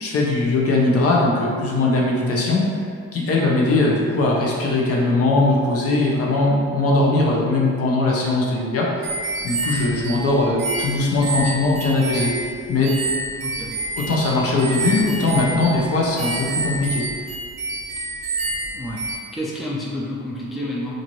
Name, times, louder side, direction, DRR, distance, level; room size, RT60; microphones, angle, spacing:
voice 1, 0.0-2.6 3.1-9.1 9.4-12.3 12.7-12.9 14.0-17.0, left 2 dB, 50° left, -3 dB, 0.7 m, -20 dB
sound 1, 9.0-19.2, right 2 dB, 60° right, 0.5 m, -28 dB
voice 2, 13.4-13.8 18.0-18.2 18.7-20.9, left 1 dB, ahead, -5 dB, 0.4 m, -30 dB
2.6 x 2.5 x 3.0 m, 2.2 s
cardioid pair, 90°, 30 cm